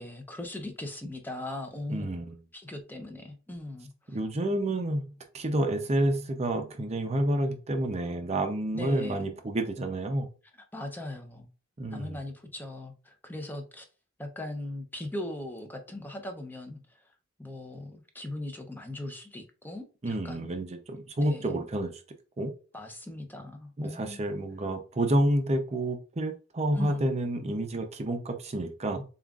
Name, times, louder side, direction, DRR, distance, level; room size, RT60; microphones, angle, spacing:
voice 1, 0.0-2.2 2.5-4.2 8.7-9.3 10.7-11.5 11.9-13.9 14.2-17.1 17.4-20.5 21.2-21.6 22.7-24.2 26.7-27.1, left 1 dB, 10° left, 0.6 m, -39 dB
voice 2, 1.9-2.4 4.1-5.1 5.3-10.3 11.8-12.2 20.0-21.9 22.4-22.5 23.8-29.0, right 1 dB, 35° right, 0.6 m, -29 dB
7.0 x 2.4 x 2.4 m
head